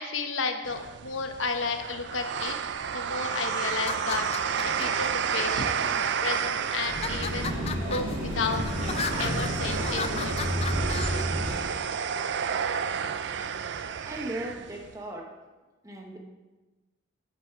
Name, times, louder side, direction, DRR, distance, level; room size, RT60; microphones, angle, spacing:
voice 1, 0.0-2.6 2.9-5.9 6.2-7.5 7.9-8.7 9.2-10.5, left 4 dB, 75° left, 6 dB, 0.9 m, -32 dB
sound 1, 0.6-14.9, right 7 dB, 60° right, 0.4 m, -31 dB
sound 2, 3.7-5.1 5.8-6.3 6.8-11.2, left 5 dB, 30° left, 0.3 m, -36 dB
sound 3, 6.7-11.8, equal, 85° right, 2.2 m, -31 dB
voice 2, 14.0-15.4 15.8-16.2, right 1 dB, 15° right, 0 dB, 1.1 m, -37 dB
8.9 x 6.2 x 4.7 m, 1.2 s
head